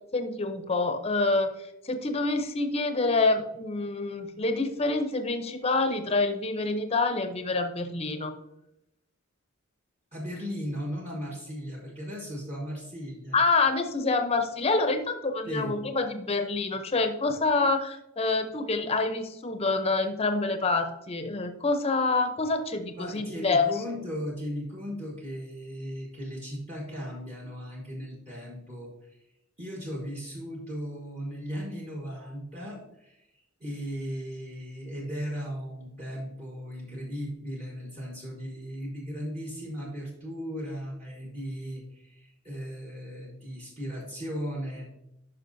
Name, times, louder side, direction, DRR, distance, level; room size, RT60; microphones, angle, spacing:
voice 1, 0.1-1.5 1.8-8.3 13.3-23.7, left 3 dB, 30° left, 8 dB, 0.7 m, -27 dB
voice 2, 10.1-13.4 15.5-15.7 22.9-29.2 29.6-44.9, equal, 35° right, -3 dB, 1.3 m, -37 dB
10.0 x 5.6 x 2.6 m, 0.86 s
head